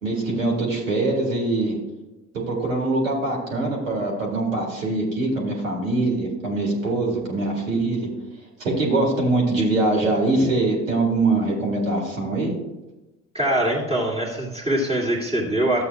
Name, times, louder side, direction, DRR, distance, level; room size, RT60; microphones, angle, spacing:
voice 1, 0.0-1.8 2.3-8.1 8.6-12.5, right 2 dB, 85° right, -1 dB, 2.1 m, -23 dB
voice 2, 13.3-15.8, right 1 dB, 15° right, -7 dB, 2.3 m, -23 dB
12.5 x 8.1 x 2.4 m, 1.0 s
figure-of-eight pair, 60°, 38 cm